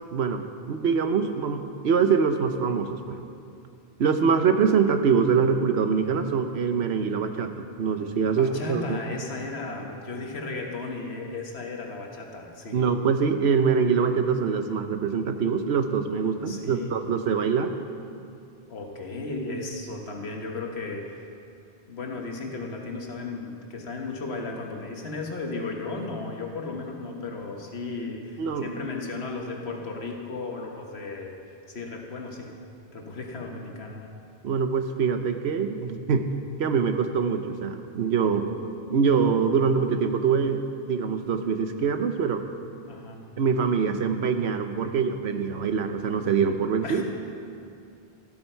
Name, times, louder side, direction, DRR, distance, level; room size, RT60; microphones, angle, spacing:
voice 1, 0.1-3.2 4.0-9.0 12.7-17.8 28.4-28.7 34.4-36.3 36.6-38.5 38.9-42.4 43.4-47.0, right 6 dB, 85° right, 7 dB, 1.1 m, -24 dB
voice 2, 8.3-12.8 16.4-17.0 18.7-21.1 21.9-31.3 31.7-32.5 32.9-34.2 42.9-43.3 46.8-47.0, left 3 dB, 80° left, 1 dB, 1.6 m, -35 dB
13.5 x 12.5 x 4.5 m, 2.5 s
omnidirectional pair, 1.1 m